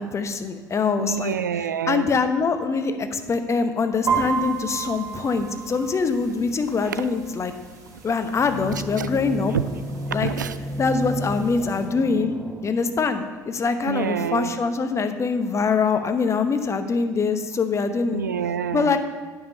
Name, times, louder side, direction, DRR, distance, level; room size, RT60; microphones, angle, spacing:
voice 1, 0.0-1.4 1.9-7.5 8.0-9.5 10.1-10.3 10.8-12.3 12.6-18.2 18.7-19.0, left 4 dB, 30° left, 8 dB, 0.9 m, -24 dB
voice 2, 1.0-2.1 6.8-7.1 9.0-9.1 10.1-10.6 13.8-14.5 18.1-19.0, right 8 dB, 90° right, 13 dB, 0.4 m, -27 dB
sound 1, 4.1-11.9, right 6 dB, 35° right, 2.2 m, -33 dB
sound 2, 8.2-12.8, equal, 5° right, 1.1 m, -32 dB
9.2 x 5.7 x 6.6 m, 1.5 s
hypercardioid pair, 65°, 10 cm